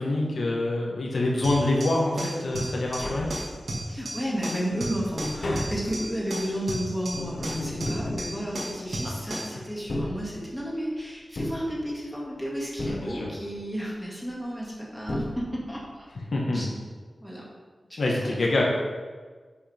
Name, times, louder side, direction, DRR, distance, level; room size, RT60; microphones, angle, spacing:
voice 1, 0.0-3.3 12.9-13.3 16.3-16.7 18.0-18.7, left 2 dB, 75° left, -2 dB, 1.7 m, -26 dB
sound 1, 1.4-9.6, right 1 dB, 60° right, 2.2 m, -34 dB
Tap, 2.8-3.9 4.4-9.1 9.7-10.8 11.4-12.3 12.8-13.6 14.6-14.7 15.1-15.9 16.2-16.3, left 1 dB, 60° left, 1.6 m, -35 dB
voice 2, 3.9-16.0 16.5-16.7 17.2-17.5 18.0-18.4, equal, ahead, -5 dB, 2.4 m, -32 dB
10.0 x 6.9 x 3.6 m, 1.5 s
wide cardioid pair, 100°, 0 cm